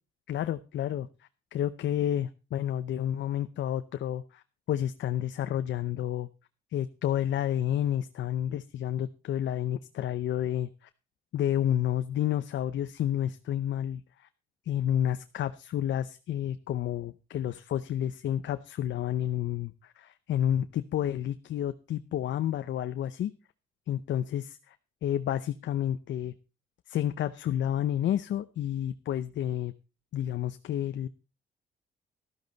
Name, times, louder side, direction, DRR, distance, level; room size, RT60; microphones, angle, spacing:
voice 1, 0.3-1.1 1.5-6.3 6.7-10.9 11.3-14.3 14.7-23.3 23.9-24.4 25.0-26.3 26.9-29.7 30.1-31.1, left 11 dB, 70° left, 10 dB, 0.8 m, -30 dB
13.0 x 12.5 x 4.0 m, 0.30 s
cardioid pair, 90°, 20 cm